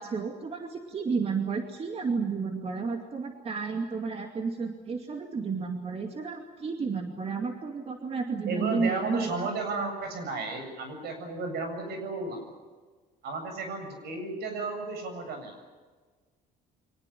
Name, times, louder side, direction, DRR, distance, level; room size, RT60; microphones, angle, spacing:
voice 1, 0.0-9.5, right 5 dB, 35° right, 4 dB, 2.5 m, -32 dB
voice 2, 8.5-12.4 13.2-15.5, right 3 dB, 75° right, 6 dB, 7.6 m, -33 dB
24.5 x 18.5 x 9.9 m, 1.4 s
cardioid pair, 110°, 17 cm